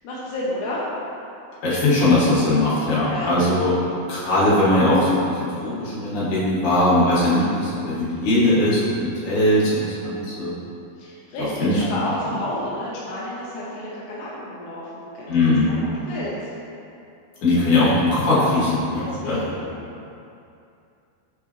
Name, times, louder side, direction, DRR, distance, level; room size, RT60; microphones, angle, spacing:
voice 1, 0.0-0.8 3.0-3.4 11.0-15.5 16.1-16.3 17.5-17.8 19.0-19.7, left 1 dB, 75° left, -6 dB, 1.9 m, -31 dB
voice 2, 1.6-3.7 4.1-10.6 11.4-11.8 15.3-15.7 17.4-19.4, left 1 dB, 60° left, -9 dB, 2.8 m, -20 dB
6.5 x 4.8 x 3.0 m, 2.6 s
omnidirectional pair, 4.5 m